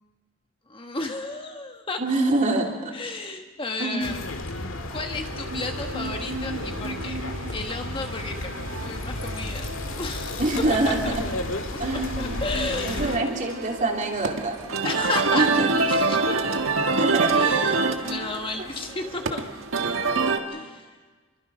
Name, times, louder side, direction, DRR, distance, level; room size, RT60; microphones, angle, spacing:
voice 1, 0.7-2.0 2.9-4.2 4.5-7.2 7.5-8.5 8.8-11.1 11.7-13.1 14.8-15.5 15.9-16.6 17.3-19.5 20.5-20.9, left 3 dB, 25° left, 4 dB, 1.3 m, -33 dB
voice 2, 2.0-2.9 3.8-4.1 10.4-11.1 11.8-12.4 12.8-14.6 15.3-15.7 17.0-17.3, right 2 dB, 40° right, 0 dB, 3.2 m, -25 dB
sound 1, 4.0-13.2, left 2 dB, 90° left, 1.7 m, -33 dB
sound 2, 5.2-20.4, right 4 dB, 80° right, 1.6 m, -28 dB
26.5 x 23.0 x 5.5 m, 1.4 s
head